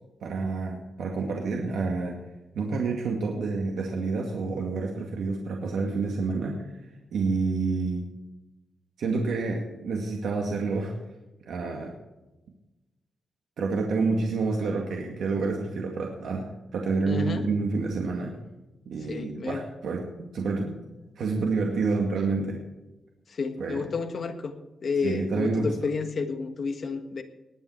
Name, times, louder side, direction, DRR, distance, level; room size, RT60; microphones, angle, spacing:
voice 1, 0.2-2.2 2.5-6.7 7.1-8.0 9.0-10.9 11.5-11.9 13.6-16.5 16.7-18.3 18.9-20.8 21.2-22.6 23.6-23.8 25.0-25.7, right 4 dB, 80° right, 0 dB, 2.1 m, -28 dB
voice 2, 17.1-17.4 19.1-19.6 23.3-24.5 24.8-27.2, left 5 dB, 50° left, 6 dB, 1.7 m, -30 dB
20.0 x 9.2 x 4.6 m, 1.0 s
wide cardioid pair, 135°, 0 cm